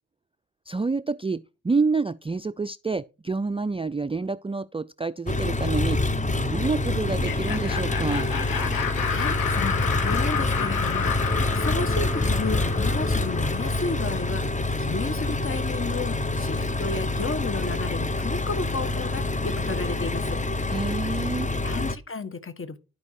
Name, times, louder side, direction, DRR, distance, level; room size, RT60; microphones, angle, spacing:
voice 1, 0.7-8.3 20.7-21.5, right 4 dB, 15° right, 0.4 m, -28 dB
Engine, 5.3-22.0, left 2 dB, 20° left, 1.0 m, -26 dB
Laughter, 7.1-13.9, left 6 dB, 70° left, 1.9 m, -31 dB
voice 2, 9.1-11.1 11.5-14.4 14.8-20.4 21.6-22.8, left 3 dB, 35° left, 1.6 m, -32 dB
11.5 x 5.3 x 4.8 m
supercardioid pair, 50°, 35 cm